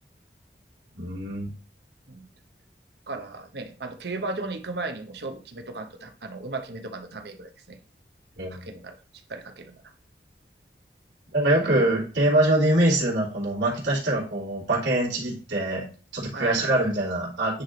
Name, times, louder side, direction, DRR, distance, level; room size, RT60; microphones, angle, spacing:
voice 1, 0.9-1.5 8.4-8.7 11.3-15.9 16.1-17.6, right 1 dB, 90° right, -6 dB, 3.2 m, -24 dB
voice 2, 3.1-7.8 8.5-8.9 9.3-9.8 11.6-11.7 16.3-16.7, right 3 dB, 70° right, 6 dB, 0.9 m, -36 dB
9.8 x 3.4 x 3.9 m, 0.38 s
head